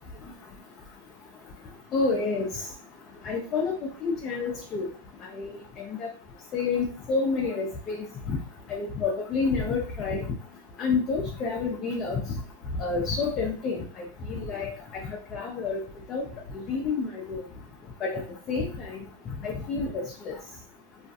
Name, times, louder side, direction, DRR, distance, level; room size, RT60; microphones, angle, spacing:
voice 1, 1.9-2.5 3.2-4.9 5.3-5.5 5.8-6.1 6.5-8.4 8.7-10.3 10.8-12.2 12.7-15.8 16.1-16.2 16.5-17.4 18.0-18.2 18.5-19.0 19.4-20.4, left 4 dB, 35° left, 0 dB, 0.5 m, -29 dB
2.4 x 2.1 x 2.6 m, 0.42 s
hypercardioid pair, 115°, 0 cm